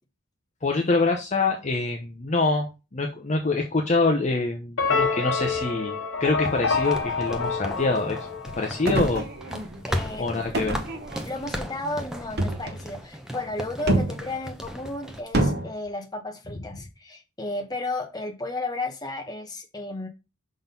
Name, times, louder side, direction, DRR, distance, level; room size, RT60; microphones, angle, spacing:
voice 1, 0.6-2.7 2.9-8.2 8.6-9.3 10.2-10.8, left 3 dB, 35° left, 0.8 m, -25 dB
sound 1, 4.8-9.1, left 4 dB, 70° left, 1.9 m, -27 dB
sound 2, 6.4-15.2, equal, 5° right, 0.7 m, -36 dB
sound 3, 8.9-9.8 10.5-11.5 12.4-12.8 13.9-14.3 15.3-15.7, right 1 dB, 50° right, 1.0 m, -26 dB
voice 2, 9.9-10.7 11.2-20.1, left 2 dB, 20° left, 1.2 m, -33 dB
6.0 x 3.9 x 5.3 m
head